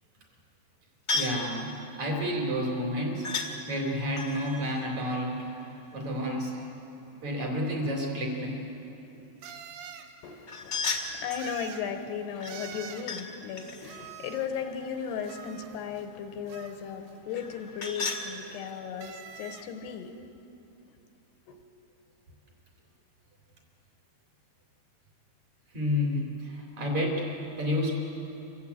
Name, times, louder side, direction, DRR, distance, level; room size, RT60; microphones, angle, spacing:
sound 1, 1.1-1.5 3.2-3.5 4.1-5.9 10.5-11.5 12.4-13.3 13.6-15.5 17.3-18.3, left 3 dB, 45° left, 1.5 m, -35 dB
voice 1, 1.1-5.6 5.9-6.6 7.2-8.6 25.7-27.9, equal, 45° right, 0 dB, 4.7 m, -30 dB
sound 2, 8.1-8.2 9.4-10.1 11.4-11.9 12.5-13.1 13.8-14.6 15.2-16.1 16.5-17.1 18.0-18.7 19.0-19.7, right 8 dB, 75° right, 3.0 m, -45 dB
voice 2, 10.2-20.3 21.5-21.6, left 7 dB, 80° left, 6 dB, 3.1 m, -36 dB
27.0 x 15.0 x 8.5 m, 2.9 s
omnidirectional pair, 4.8 m